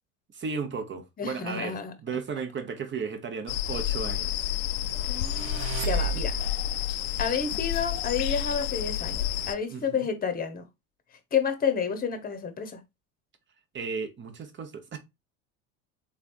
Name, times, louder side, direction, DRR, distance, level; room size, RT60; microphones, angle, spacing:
voice 1, 0.3-4.5 9.7-10.1 13.7-15.0, right 5 dB, 30° right, 1.0 m, -35 dB
voice 2, 1.2-1.9 5.0-6.4 7.2-10.6 11.3-12.8, left 6 dB, 25° left, 1.0 m, -30 dB
sound 1, 3.5-9.5, left 11 dB, 65° left, 0.6 m, -30 dB
sound 2, 5.0-6.7, right 6 dB, 45° right, 0.5 m, -33 dB
3.6 x 3.2 x 2.6 m
hypercardioid pair, 90°, 38 cm